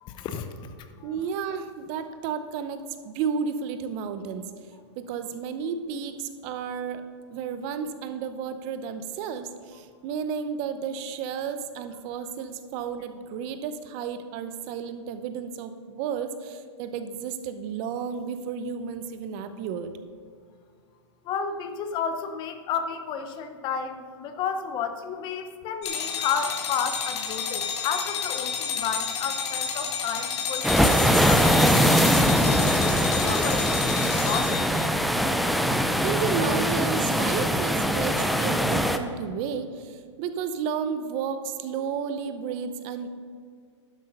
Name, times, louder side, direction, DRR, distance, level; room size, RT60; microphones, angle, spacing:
voice 1, 0.0-1.1 21.2-32.6 33.2-34.7, left 6 dB, 30° left, 9 dB, 0.8 m, -32 dB
voice 2, 1.0-7.0 7.3-19.9 36.0-43.1, right 6 dB, 40° right, 9 dB, 0.8 m, -32 dB
sound 1, 25.8-34.9, left 7 dB, 60° left, 2.0 m, -31 dB
sound 2, 30.6-39.0, equal, ahead, 0.5 m, -22 dB
11.5 x 7.6 x 5.4 m, 2.1 s
hypercardioid pair, 130°, 16 cm